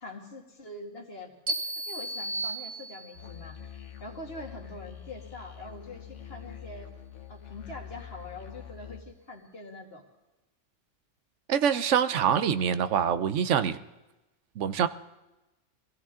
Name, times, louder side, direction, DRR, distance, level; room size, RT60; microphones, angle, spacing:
voice 1, 0.0-6.9 7.3-10.0, left 2 dB, 55° left, 2 dB, 2.3 m, -44 dB
sound 1, 1.5-3.4, right 2 dB, 40° right, 1.4 m, -34 dB
Musical instrument, 3.1-9.0, left 10 dB, 80° left, 1.4 m, -45 dB
voice 2, 11.5-13.8 14.6-14.9, right 8 dB, 80° right, 12 dB, 1.0 m, -25 dB
22.5 x 15.5 x 3.7 m, 1.0 s
omnidirectional pair, 1.2 m